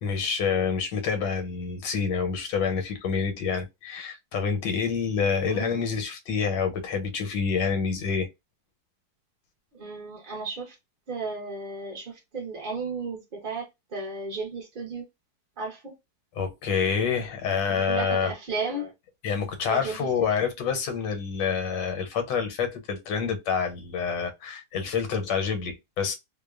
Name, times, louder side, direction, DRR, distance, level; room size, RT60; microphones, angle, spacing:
voice 1, 0.0-8.3 16.3-18.3 19.2-26.2, left 6 dB, 90° left, 1.3 m, -27 dB
voice 2, 5.5-5.8 9.7-10.7 11.1-15.0 15.6-15.9 17.7-18.9 19.7-20.0, right 3 dB, 55° right, 0.5 m, -34 dB
2.8 x 2.1 x 2.3 m
omnidirectional pair, 1.8 m